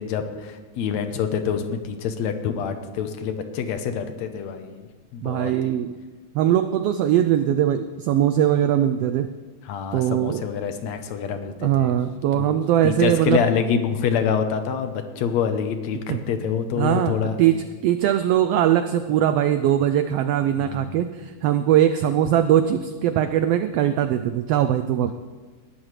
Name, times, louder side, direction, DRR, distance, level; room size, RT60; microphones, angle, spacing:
voice 1, 0.0-5.7 9.6-12.0 12.3-12.6 12.8-17.6 20.6-21.0, left 7 dB, 75° left, 7 dB, 2.1 m, -26 dB
voice 2, 5.2-5.9 6.3-9.3 9.9-10.4 11.6-13.4 16.1-16.2 16.8-17.5 17.8-25.1, right 11 dB, 85° right, 10 dB, 1.4 m, -21 dB
19.5 x 12.5 x 3.2 m, 1.4 s
omnidirectional pair, 3.3 m